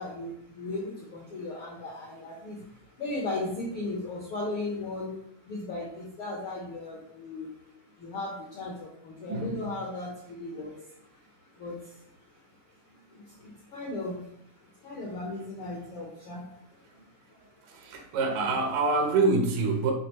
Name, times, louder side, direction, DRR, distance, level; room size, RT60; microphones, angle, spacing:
voice 1, 0.0-12.7 13.1-18.4, left 2 dB, 70° left, -2 dB, 1.3 m, -38 dB
voice 2, 9.3-9.7 13.1-13.4 17.4-19.9, right 3 dB, 80° right, 3 dB, 2.5 m, -27 dB
9.0 x 3.6 x 3.0 m, 0.71 s
omnidirectional pair, 3.7 m